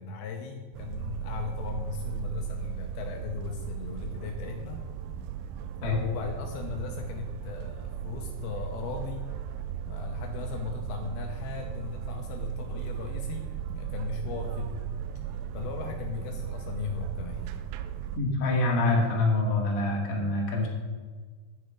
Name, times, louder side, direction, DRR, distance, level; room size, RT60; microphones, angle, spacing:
voice 1, 0.0-4.8 5.8-9.3 9.9-14.8 15.5-17.4, left 6 dB, 90° left, 3 dB, 2.1 m, -37 dB
sound 1, 0.7-18.2, right 9 dB, 85° right, 2.7 m, -36 dB
voice 2, 18.2-20.7, left 2 dB, 40° left, -2 dB, 2.2 m, -25 dB
10.5 x 9.7 x 5.1 m, 1.5 s
omnidirectional pair, 5.7 m